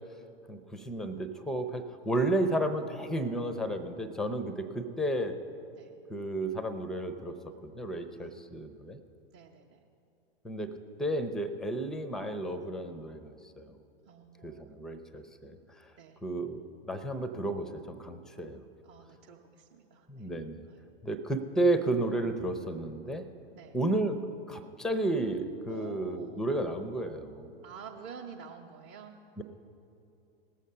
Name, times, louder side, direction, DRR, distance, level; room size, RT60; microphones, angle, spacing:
voice 1, 0.5-5.4 6.1-7.4 7.6-9.0 10.4-13.7 14.4-15.9 16.2-16.6 16.9-18.6 20.1-20.6 21.0-23.3 23.7-24.2 24.5-27.5 29.4-29.5, right 1 dB, ahead, 10 dB, 0.5 m, -32 dB
voice 2, 9.3-9.8 14.1-14.9 16.0-16.2 18.8-20.3 20.7-20.8 23.5-23.8 25.7-26.4 27.6-29.2, right 6 dB, 30° right, -2 dB, 0.8 m, -49 dB
18.5 x 7.3 x 5.5 m, 2.7 s
figure-of-eight pair, 100°, 30 cm